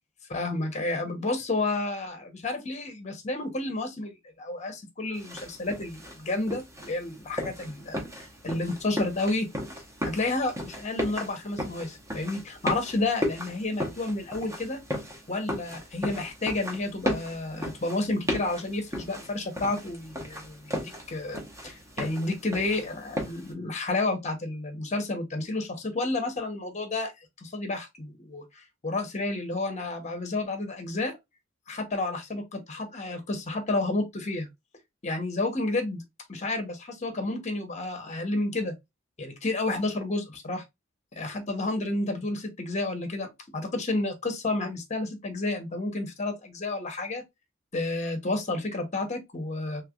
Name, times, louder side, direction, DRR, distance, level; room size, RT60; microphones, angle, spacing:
voice 1, 0.3-9.5 10.0-14.8 15.3-27.1 27.4-31.1 31.7-34.5 35.0-36.0 36.3-38.7 39.2-40.6 41.2-47.2 47.7-49.8, left 2 dB, 35° left, 0.9 m, -31 dB
sound 1, 5.1-23.5, left 1 dB, 15° right, 0.9 m, -36 dB
3.2 x 3.2 x 2.4 m
head